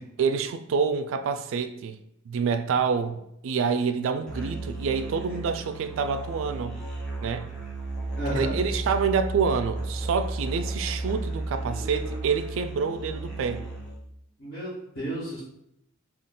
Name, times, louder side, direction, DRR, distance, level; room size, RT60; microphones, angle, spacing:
voice 1, 0.2-2.0 2.3-6.8 7.2-7.5 8.3-13.6, right 5 dB, 70° right, 0.3 m, -27 dB
Musical instrument, 4.3-14.1, right 2 dB, 5° left, 1.0 m, -34 dB
voice 2, 8.1-8.6 14.4-15.4, right 1 dB, 70° left, 1.5 m, -32 dB
3.7 x 2.3 x 3.7 m
head